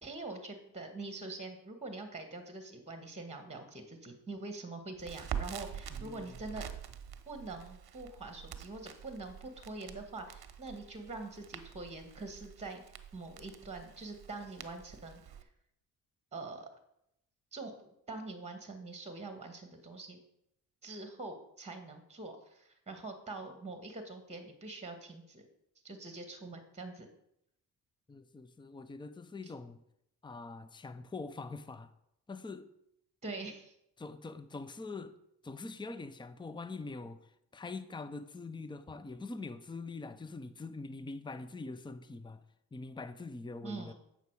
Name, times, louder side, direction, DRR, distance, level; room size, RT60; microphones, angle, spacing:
voice 1, 0.0-6.7 7.3-12.8 13.1-15.5 16.3-16.7 17.5-20.2 20.8-25.4 25.8-27.1 33.2-33.7 43.6-43.9, right 3 dB, 15° right, 1.5 m, -44 dB
Crackle, 5.0-15.4, right 9 dB, 50° right, 0.9 m, -46 dB
voice 2, 5.9-6.4 28.1-29.8 30.2-31.9 32.3-32.7 34.0-35.2 35.4-42.4 42.7-43.9, left 3 dB, 10° left, 0.6 m, -44 dB
8.2 x 5.7 x 4.7 m
supercardioid pair, 55°, 47 cm